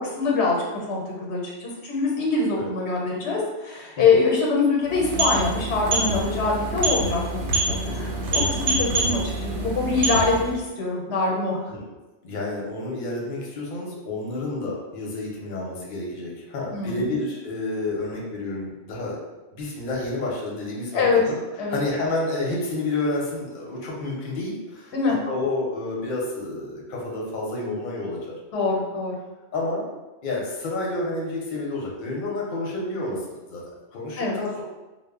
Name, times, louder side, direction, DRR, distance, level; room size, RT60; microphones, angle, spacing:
voice 1, 0.0-11.7 16.7-17.2 20.9-21.2 21.6-21.8 24.9-25.2 28.5-29.2 34.2-34.4, left 4 dB, 90° left, -2 dB, 0.9 m, -24 dB
sound 1, 4.8-10.6, right 2 dB, 85° right, 0.9 m, -26 dB
voice 2, 12.2-19.2 19.5-21.4 21.7-24.9 25.3-28.2 29.5-29.9 30.2-34.6, left 2 dB, 55° left, -3 dB, 0.7 m, -30 dB
2.0 x 2.0 x 3.5 m, 1.1 s
omnidirectional pair, 1.1 m